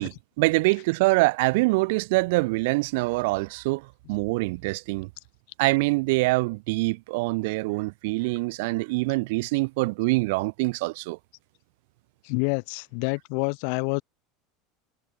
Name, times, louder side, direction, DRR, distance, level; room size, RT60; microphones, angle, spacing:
voice 1, 0.0-3.8 4.1-5.1 5.6-11.2, right 25 dB, 75° right, 5.7 m, -24 dB
voice 2, 12.2-14.0, left 40 dB or more, 65° left, 3.3 m, -27 dB
supercardioid pair, 130°, 0 cm